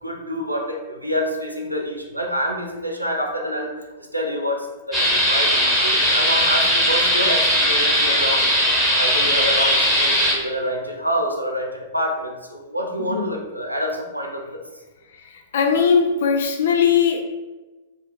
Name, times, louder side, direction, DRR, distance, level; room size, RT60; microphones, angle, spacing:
voice 1, 0.0-3.7 4.0-8.5 9.0-14.6, equal, 90° right, 1 dB, 0.4 m, -27 dB
sound 1, 4.9-10.3, equal, 5° left, 1.0 m, -18 dB
voice 2, 13.0-13.3 15.5-17.2, left 6 dB, 60° left, 3 dB, 0.4 m, -19 dB
2.5 x 2.2 x 3.4 m, 1.2 s
figure-of-eight pair, 100°, 0 cm